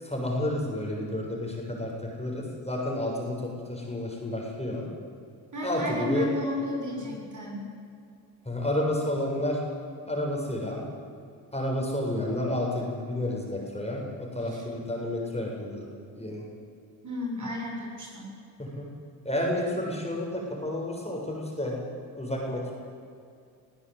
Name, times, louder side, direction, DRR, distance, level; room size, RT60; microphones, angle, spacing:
voice 1, 0.0-4.9 5.6-6.3 8.5-9.6 10.1-10.8 11.5-15.8 16.2-16.4 18.6-18.9 19.2-21.8 22.2-22.7, left 1 dB, 15° left, -1 dB, 7.3 m, -30 dB
voice 2, 5.5-7.6 14.4-14.6 17.0-18.2, left 1 dB, 35° right, -1 dB, 7.3 m, -33 dB
23.0 x 14.5 x 8.5 m, 2.4 s
hypercardioid pair, 50°, 49 cm